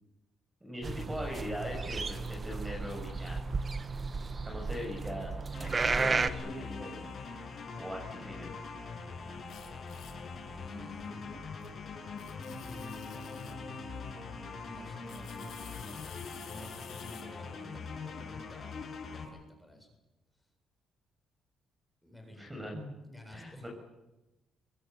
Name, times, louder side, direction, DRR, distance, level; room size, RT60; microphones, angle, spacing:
voice 1, 0.6-3.5 4.4-7.5 7.8-8.6 22.4-22.9 23.3-23.7, left 1 dB, 10° right, 1 dB, 6.9 m, -41 dB
sound 1, 0.8-6.3, right 4 dB, 30° right, 1.5 m, -33 dB
sound 2, 5.5-19.2, left 4 dB, 45° left, 7.1 m, -43 dB
sound 3, 9.5-10.2 11.6-11.7 12.2-13.6 15.1-17.2, left 8 dB, 70° left, 6.2 m, -51 dB
voice 2, 10.5-11.3 12.6-16.2 16.4-18.8 19.1-19.9 22.0-22.6 23.0-23.7, left 1 dB, 5° left, 3 dB, 8.0 m, -50 dB
24.0 x 21.5 x 9.6 m, 0.98 s
cardioid pair, 110°, 0 cm